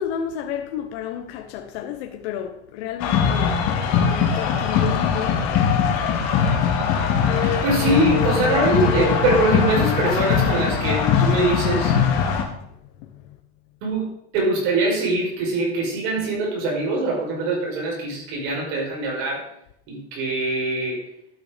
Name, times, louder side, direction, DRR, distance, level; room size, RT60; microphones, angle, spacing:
voice 1, 0.0-5.5 13.0-13.4, left 9 dB, 75° left, 1.1 m, -31 dB
sound 1, 3.0-12.4, left 7 dB, 55° left, 2.3 m, -21 dB
voice 2, 7.4-12.0 13.8-14.1 14.3-19.5 19.9-21.0, right 2 dB, 65° right, 5.1 m, -23 dB
12.0 x 6.4 x 5.2 m
cardioid pair, 155°, 33 cm